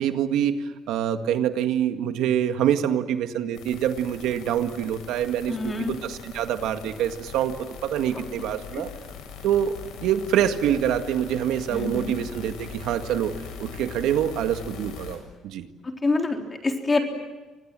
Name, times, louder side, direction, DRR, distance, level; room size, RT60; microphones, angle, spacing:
voice 1, 0.0-7.5 7.8-8.9 9.4-9.8 10.0-13.3 13.6-15.7, right 10 dB, 85° right, 7 dB, 1.9 m, -25 dB
sound 1, 3.5-15.2, left 7 dB, 85° left, 7.9 m, -41 dB
voice 2, 5.5-5.9 11.7-12.2 16.0-17.0, left 3 dB, 15° left, 2 dB, 3.9 m, -25 dB
30.0 x 26.0 x 7.7 m, 1.1 s
cardioid pair, 170°, 0 cm